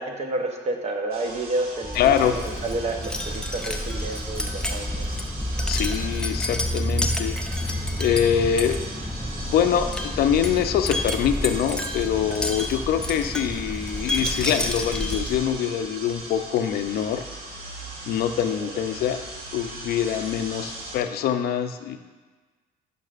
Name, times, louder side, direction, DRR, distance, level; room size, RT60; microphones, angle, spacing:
voice 1, 0.0-5.1 7.7-8.0 18.6-18.7, right 2 dB, 40° right, 3 dB, 0.9 m, -30 dB
sound 1, 1.1-21.0, right 2 dB, 65° right, 1.4 m, -39 dB
Wind chime, 1.8-15.6, left 1 dB, 5° left, 0.5 m, -29 dB
voice 2, 1.9-2.4 5.7-7.4 8.0-8.8 9.4-17.2 18.1-19.2 19.5-22.0, left 9 dB, 65° left, 8 dB, 0.5 m, -24 dB
10.5 x 5.4 x 2.5 m, 1.3 s
cardioid pair, 110°, 17 cm